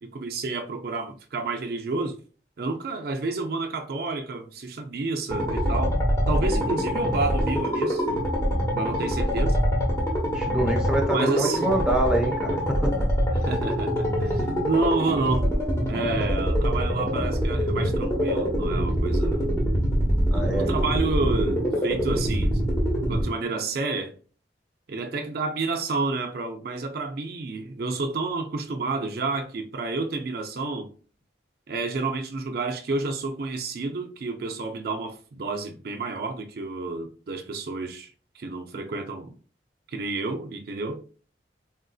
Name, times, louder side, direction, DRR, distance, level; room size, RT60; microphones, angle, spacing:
voice 1, 0.0-2.1 2.6-6.0 6.3-8.0 8.7-9.6 11.1-11.7 13.4-15.5 15.9-19.5 20.3-22.6 23.1-24.1 24.9-30.9 31.7-39.3 39.9-41.0, right 3 dB, 55° right, 0.4 m, -30 dB
sound 1, 5.3-23.2, equal, 15° left, 0.9 m, -24 dB
voice 2, 10.3-13.0 20.3-20.7, right 1 dB, 5° right, 0.5 m, -25 dB
3.7 x 2.5 x 2.3 m
head